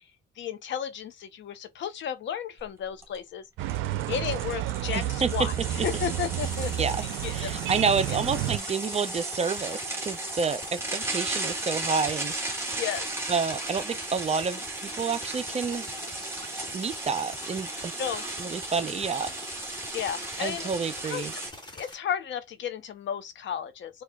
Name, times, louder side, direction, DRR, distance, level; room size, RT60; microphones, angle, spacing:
voice 1, 0.4-3.8 4.1-6.9 7.2-7.5 8.1-8.2 12.8-13.1 18.0-18.2 19.9-20.7 21.0-21.3 21.7-24.0, left 9 dB, 70° left, 0.9 m, -33 dB
sound 1, 2.6-2.7 3.0-3.2 3.7-21.5, right 2 dB, 10° right, 1.3 m, -36 dB
sound 2, 3.6-8.6, right 13 dB, 90° right, 0.4 m, -31 dB
voice 2, 4.9-5.3 5.8-5.9 6.8-7.0 7.3-12.6 13.3-15.9 16.7-17.9 18.4-19.3 20.4-21.3, right 5 dB, 30° right, 0.6 m, -29 dB
sound 3, 6.4-21.9, left 1 dB, 20° left, 1.5 m, -44 dB
4.4 x 2.4 x 2.2 m
cardioid pair, 90°, 20 cm